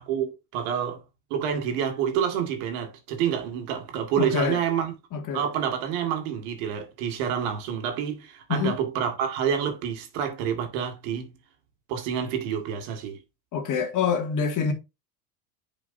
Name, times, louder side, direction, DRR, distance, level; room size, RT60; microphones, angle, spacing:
voice 1, 0.1-1.0 1.3-4.9 5.3-11.3 11.9-13.2, right 8 dB, 70° right, 2.2 m, -28 dB
voice 2, 4.2-4.6 5.1-5.4 8.5-8.8 13.5-14.7, left 6 dB, 40° left, 2.2 m, -26 dB
9.6 x 5.1 x 2.7 m
supercardioid pair, 110°, 47 cm